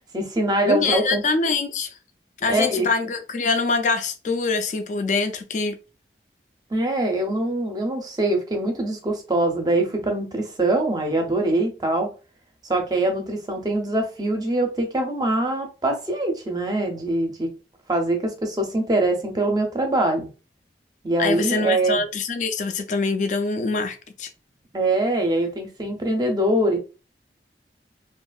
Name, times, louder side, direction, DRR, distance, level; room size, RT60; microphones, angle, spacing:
voice 1, 0.1-1.2 2.5-2.9 6.7-12.1 12.7-17.5 17.9-20.3 21.0-22.0 24.7-26.8, right 1 dB, 20° right, 0.5 m, -23 dB
voice 2, 0.7-1.9 2.4-5.8 21.2-24.3, left 4 dB, 45° left, 0.3 m, -24 dB
2.7 x 2.4 x 2.3 m
head